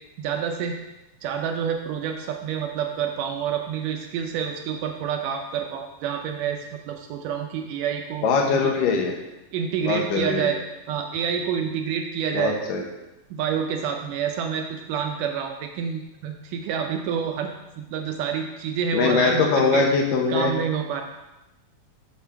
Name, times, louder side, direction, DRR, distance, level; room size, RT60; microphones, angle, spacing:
voice 1, 0.2-0.8 1.2-8.8 9.5-10.6 10.9-12.6 13.3-17.5 17.8-19.8 20.3-21.0, right 7 dB, 75° right, 3 dB, 2.0 m, -28 dB
voice 2, 8.2-9.1 9.8-10.5 12.3-12.8 18.9-20.5, left 4 dB, 75° left, 1 dB, 2.6 m, -22 dB
6.5 x 6.0 x 5.7 m, 0.98 s
omnidirectional pair, 4.1 m